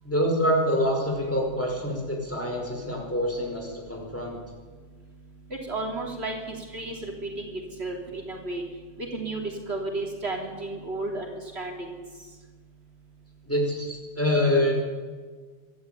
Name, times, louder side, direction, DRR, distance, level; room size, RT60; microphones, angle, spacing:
voice 1, 0.0-4.4 13.5-14.7, equal, 10° left, 0 dB, 5.3 m, -26 dB
voice 2, 5.5-8.6 9.0-12.0, right 2 dB, 60° right, 1 dB, 3.4 m, -33 dB
24.0 x 13.5 x 9.2 m, 1.5 s
omnidirectional pair, 1.2 m